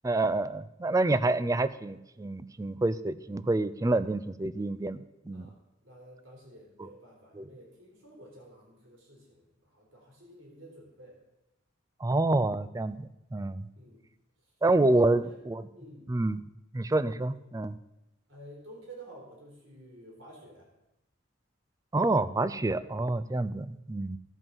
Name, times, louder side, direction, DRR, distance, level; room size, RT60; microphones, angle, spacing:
voice 1, 0.0-5.5 6.8-6.9 7.4-7.5 12.0-13.7 14.6-15.2 15.5-15.7 16.1-16.4 16.7-17.8 21.9-24.2, right 2 dB, 15° right, 14 dB, 0.4 m, -28 dB
voice 2, 5.3-11.2 13.8-14.0 14.9-15.4 15.7-16.1 18.3-20.7, right 1 dB, 75° right, -2 dB, 3.6 m, -51 dB
16.5 x 5.5 x 5.5 m, 0.91 s
head